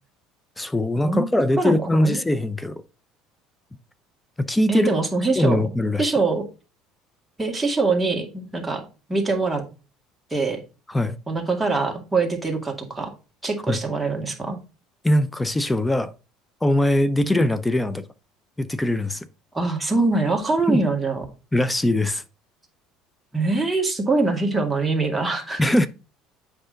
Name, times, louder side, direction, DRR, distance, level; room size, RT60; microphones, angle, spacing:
voice 1, 0.6-2.8 4.4-4.9 5.4-6.1 10.9-11.2 13.7-13.8 15.0-16.1 16.6-18.0 18.6-19.3 20.7-20.8 21.5-22.2 25.6-25.9, left 1 dB, 10° left, 0.6 m, -21 dB
voice 2, 1.6-2.2 4.7-5.6 6.0-6.5 7.4-9.6 10.3-10.6 11.3-13.1 13.4-14.6 17.2-17.4 19.5-21.2 23.3-25.6, right 3 dB, 10° right, 2.0 m, -23 dB
7.9 x 4.9 x 3.9 m
supercardioid pair, 90°, 0 cm